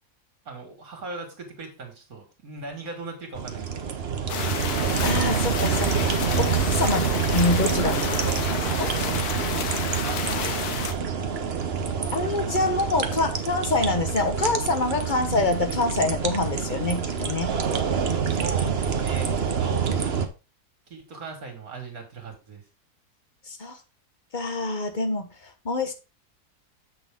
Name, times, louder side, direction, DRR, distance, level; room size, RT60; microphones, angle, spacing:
voice 1, 0.5-4.0 6.9-7.2 10.0-10.6 18.2-19.3 19.6-19.9 20.9-22.6, right 3 dB, 65° right, 3 dB, 2.6 m, -38 dB
sound 1, 3.3-20.3, right 6 dB, 45° right, 1.0 m, -26 dB
sound 2, 4.3-10.9, left 7 dB, 75° left, 1.4 m, -31 dB
voice 2, 5.0-7.1 7.3-8.9 12.1-17.5 23.5-23.8 24.3-25.3 25.6-25.9, left 3 dB, 35° left, 6 dB, 1.2 m, -26 dB
7.6 x 6.3 x 3.6 m, 0.30 s
omnidirectional pair, 1.7 m